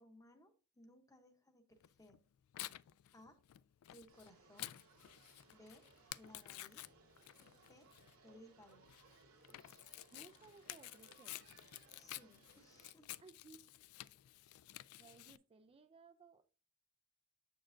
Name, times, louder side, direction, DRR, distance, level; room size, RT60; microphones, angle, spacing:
voice 1, 0.0-2.2 3.1-3.4 3.9-4.7 5.5-5.9 6.1-6.9 7.5-7.9 8.2-8.9 11.9-13.1 14.4-14.6, left 1 dB, 15° left, 0.8 m, -62 dB
Tearing, 1.8-15.4, left 15 dB, 70° left, 0.3 m, -52 dB
sound 1, 4.1-12.9, right 3 dB, 80° right, 1.8 m, -66 dB
voice 2, 10.1-11.4 13.2-13.7 14.4-14.6 15.0-16.5, right 4 dB, 25° right, 0.3 m, -61 dB
7.7 x 6.5 x 2.5 m
head